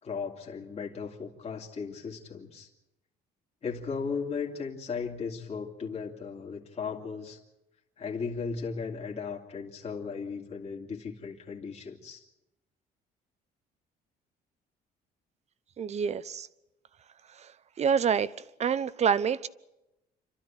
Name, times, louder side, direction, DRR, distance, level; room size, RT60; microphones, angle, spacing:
voice 1, 0.0-2.7 3.6-7.4 8.0-12.2, left 5 dB, 40° left, 0 dB, 3.0 m, -36 dB
voice 2, 15.8-16.5 17.4-17.5 17.8-18.3 18.6-19.5, right 7 dB, 40° right, 16 dB, 0.9 m, -27 dB
28.5 x 13.0 x 9.0 m, 0.97 s
cardioid pair, 110°, 17 cm